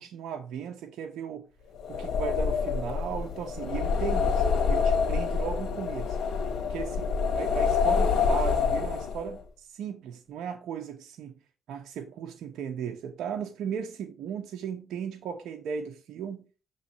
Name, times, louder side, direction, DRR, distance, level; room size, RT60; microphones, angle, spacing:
voice 1, 0.0-1.5 1.9-6.2 6.7-11.4 11.7-16.5, right 7 dB, 80° right, 0.7 m, -36 dB
sound 1, 1.8-9.4, left 5 dB, 70° left, 1.4 m, -27 dB
6.9 x 3.1 x 4.3 m
cardioid pair, 90°, 0 cm